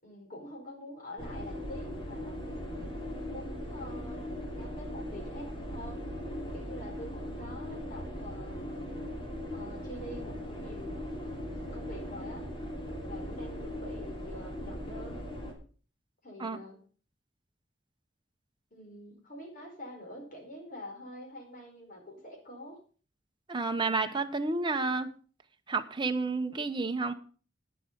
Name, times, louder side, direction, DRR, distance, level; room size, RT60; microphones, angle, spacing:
voice 1, 0.0-2.8 3.3-6.1 6.5-8.6 9.5-10.9 11.7-12.5 13.0-15.2 16.2-16.8 18.7-22.8, left 1 dB, 45° left, 2 dB, 4.7 m, -46 dB
sound 1, 1.2-15.5, equal, 30° left, 3.0 m, -39 dB
voice 2, 23.5-25.1 25.7-27.1, right 3 dB, 25° right, 6 dB, 0.9 m, -30 dB
10.5 x 9.8 x 5.3 m, 0.39 s
head